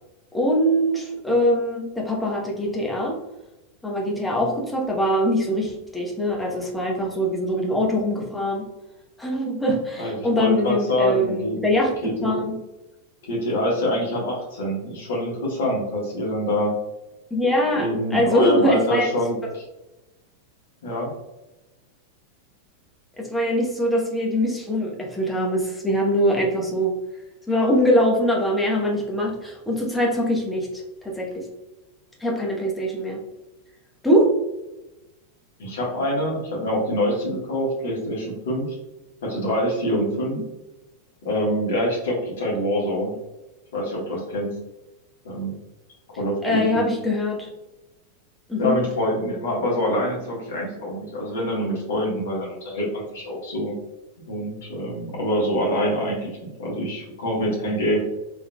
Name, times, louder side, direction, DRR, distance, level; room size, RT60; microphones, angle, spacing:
voice 1, 0.3-3.2 3.8-8.7 9.2-11.9 12.2-12.6 17.3-19.1 23.2-26.9 27.5-31.5 32.2-33.2 34.0-34.3 40.4-40.5 46.4-47.5 48.5-48.8, equal, 5° left, -2 dB, 0.9 m, -23 dB
voice 2, 10.0-11.6 12.0-12.3 13.3-16.7 17.7-19.6 20.8-21.1 35.6-38.6 39.2-40.4 41.2-43.1 43.7-44.6 45.2-45.6 46.2-46.9 48.6-53.7 54.3-56.3 56.6-58.0, equal, 60° left, -4 dB, 1.5 m, -25 dB
3.6 x 3.4 x 2.2 m, 1.0 s
figure-of-eight pair, 90°, 0 cm